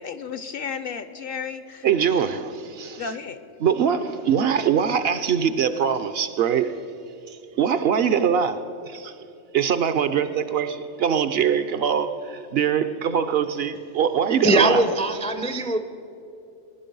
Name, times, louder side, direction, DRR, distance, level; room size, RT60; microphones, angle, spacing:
voice 1, 0.0-1.9 3.0-3.4, left 6 dB, 60° left, 0.7 m, -33 dB
voice 2, 1.8-3.0 3.6-6.7 7.3-8.6 8.8-9.1 9.5-14.8, right 8 dB, 60° right, 0.8 m, -23 dB
voice 3, 14.4-15.8, right 2 dB, 10° left, 0.3 m, -21 dB
19.5 x 11.0 x 5.3 m
omnidirectional pair, 1.3 m